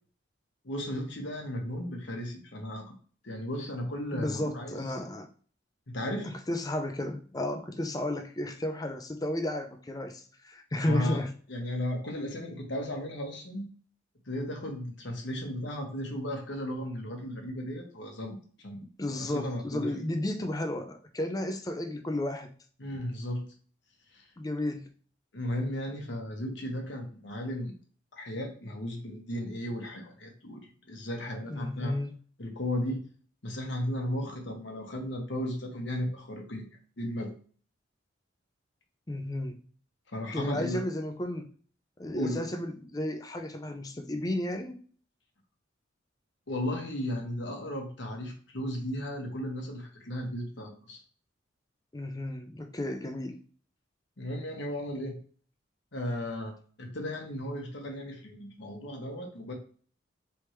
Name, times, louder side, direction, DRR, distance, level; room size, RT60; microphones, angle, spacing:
voice 1, 0.6-2.9 3.2-4.9 5.9-6.3 10.9-11.2 11.5-13.7 14.3-18.8 19.2-19.9 22.8-23.5 24.1-24.2 25.3-27.7 28.1-32.0 32.4-33.0 33.4-36.7 37.0-37.3 40.1-40.8 42.1-42.4 46.5-51.0 54.2-55.2 55.9-59.5, left 1 dB, 65° left, 2 dB, 1.2 m, -35 dB
voice 2, 4.1-5.3 6.2-11.4 19.0-22.5 24.4-24.9 31.5-32.2 39.1-39.6 40.3-41.5 42.0-44.8 51.9-53.4, left 1 dB, 20° left, 6 dB, 0.5 m, -33 dB
4.4 x 3.5 x 3.1 m, 0.43 s
head